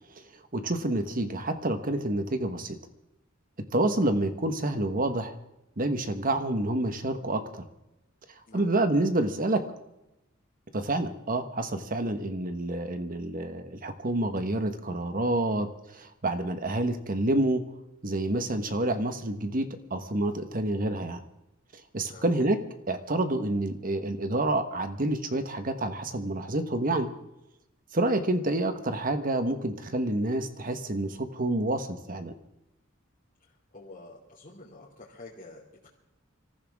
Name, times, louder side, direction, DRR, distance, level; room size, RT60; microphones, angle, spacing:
voice 1, 0.5-2.8 3.7-5.4 5.8-7.6 8.5-9.6 10.7-17.6 18.0-21.2 21.9-22.6 22.9-27.1 27.9-32.3, right 1 dB, 45° right, 8 dB, 1.4 m, -28 dB
voice 2, 33.4-35.9, left 2 dB, 40° left, -7 dB, 2.8 m, -49 dB
25.0 x 14.5 x 3.7 m, 0.92 s
head